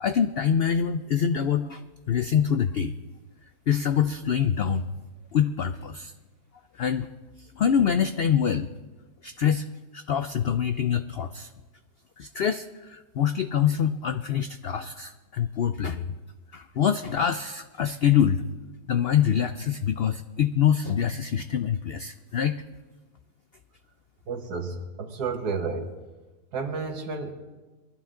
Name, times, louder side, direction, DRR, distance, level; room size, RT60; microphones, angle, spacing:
voice 1, 0.0-1.8 2.1-3.0 3.7-4.9 5.3-6.1 6.8-7.1 7.5-8.7 9.2-9.7 9.9-11.5 12.2-16.1 16.5-18.4 18.9-22.6, left 8 dB, 85° left, 10 dB, 0.5 m, -25 dB
voice 2, 24.3-26.0 26.5-27.3, right 4 dB, 80° right, 4 dB, 1.9 m, -31 dB
22.5 x 12.0 x 3.8 m, 1.2 s
omnidirectional pair, 1.7 m